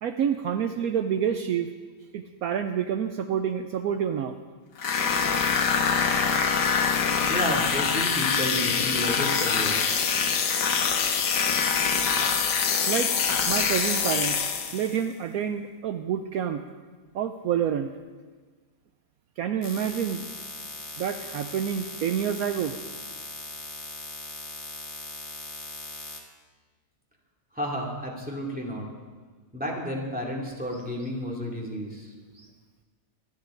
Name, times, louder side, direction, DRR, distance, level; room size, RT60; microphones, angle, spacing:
voice 1, 0.0-1.7 2.1-4.4 12.9-14.4 14.7-16.6 17.1-17.9 19.4-20.3 21.0-22.8 32.3-32.5, right 8 dB, 70° right, 7 dB, 1.0 m, -28 dB
sound 1, 4.8-15.0, left 6 dB, 85° left, 1.6 m, -24 dB
voice 2, 7.2-10.0 27.5-28.9 29.5-32.1, equal, 5° right, -2 dB, 2.4 m, -31 dB
sound 2, 19.6-26.2, left 2 dB, 30° left, 1.7 m, -39 dB
26.5 x 10.5 x 3.8 m, 1.4 s
omnidirectional pair, 1.7 m